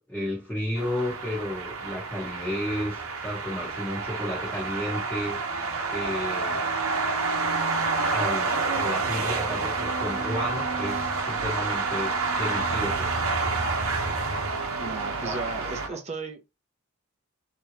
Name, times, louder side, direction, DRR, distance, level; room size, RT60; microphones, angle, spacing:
voice 1, 0.1-5.4 5.9-6.6 8.1-13.1 15.2-15.5 15.9-16.0, left 1 dB, 10° left, 1.1 m, -32 dB
sound 1, 0.8-15.9, right 4 dB, 75° right, 0.9 m, -28 dB
voice 2, 14.8-16.5, right 3 dB, 30° right, 0.7 m, -36 dB
3.5 x 2.9 x 2.9 m
head